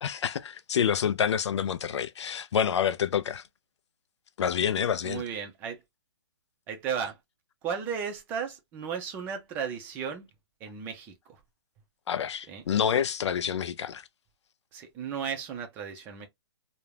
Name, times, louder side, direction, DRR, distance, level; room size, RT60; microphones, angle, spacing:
voice 1, 0.0-3.4 4.4-5.2 12.1-14.1, left 8 dB, 85° left, 0.4 m, -28 dB
voice 2, 5.0-5.8 6.7-7.2 7.6-10.3 10.6-11.1 12.5-12.6 14.7-16.3, right 7 dB, 15° right, 0.4 m, -34 dB
2.4 x 2.1 x 3.0 m
hypercardioid pair, 160°, 14 cm